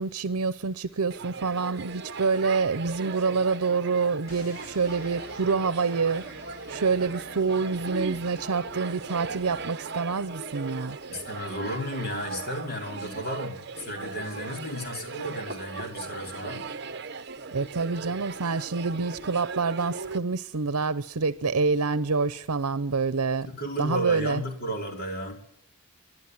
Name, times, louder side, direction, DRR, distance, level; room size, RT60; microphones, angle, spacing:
voice 1, 0.0-6.2 6.7-11.0 17.5-23.5 23.8-24.4, right 4 dB, 80° right, 0.8 m, -27 dB
sound 1, 1.1-20.2, right 4 dB, 50° right, 1.0 m, -38 dB
sound 2, 4.3-10.1, left 2 dB, 75° left, 2.9 m, -49 dB
voice 2, 11.1-16.7 23.4-25.4, equal, 45° left, 5.0 m, -33 dB
24.0 x 12.0 x 9.9 m
head